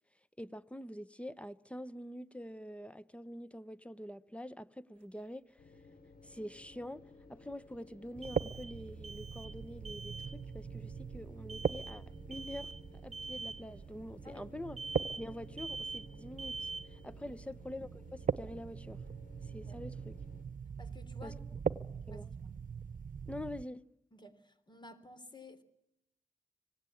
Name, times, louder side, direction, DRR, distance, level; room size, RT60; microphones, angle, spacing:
voice 1, 0.4-5.6 6.2-14.8 15.2-19.0 19.4-20.1 21.2-21.3 22.1-22.3 23.3-23.8, left 1 dB, 10° left, 0.9 m, -46 dB
sound 1, 5.0-5.1 8.2-8.8 9.0-9.6 9.8-10.3 11.5-12.0 12.3-12.8 13.1-13.6 14.8-15.3 15.6-16.1 16.4-16.9, right 3 dB, 45° right, 1.2 m, -44 dB
sound 2, 5.6-20.4, left 3 dB, 85° left, 2.8 m, -58 dB
sound 3, 8.1-23.7, right 6 dB, 65° right, 0.9 m, -41 dB
voice 2, 20.8-21.4 22.1-22.5 24.1-25.6, left 2 dB, 30° left, 3.4 m, -54 dB
26.0 x 18.5 x 8.6 m
wide cardioid pair, 75°, 15 cm